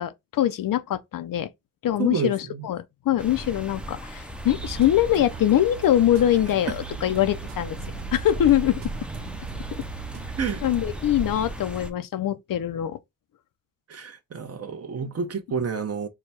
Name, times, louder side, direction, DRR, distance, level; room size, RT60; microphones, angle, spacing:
voice 1, 0.0-1.5 1.8-7.8 8.1-8.8 10.6-13.0 15.0-15.1, left 12 dB, 70° left, 0.6 m, -23 dB
voice 2, 2.0-2.7 10.4-10.6 13.9-16.1, right 6 dB, 45° right, 0.9 m, -29 dB
sound 1, 3.2-11.9, right 1 dB, 5° right, 0.6 m, -36 dB
sound 2, 4.5-11.3, right 14 dB, 75° right, 0.6 m, -41 dB
4.7 x 2.3 x 4.2 m
cardioid pair, 100°, 34 cm